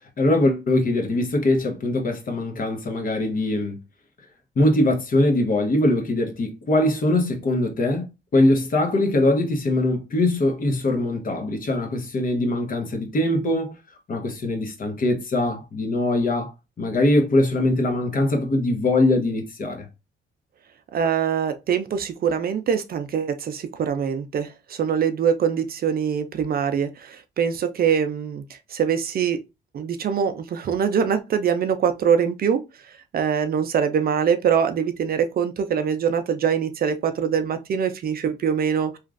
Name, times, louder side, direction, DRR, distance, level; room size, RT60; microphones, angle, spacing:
voice 1, 0.2-3.8 4.6-8.0 8.3-13.7 14.1-16.5 16.8-19.9, left 1 dB, 45° left, 0.9 m, -22 dB
voice 2, 20.9-29.4 29.7-32.6 33.1-39.0, right 7 dB, 50° right, 0.4 m, -23 dB
2.9 x 2.4 x 2.4 m
cardioid pair, 90°, 20 cm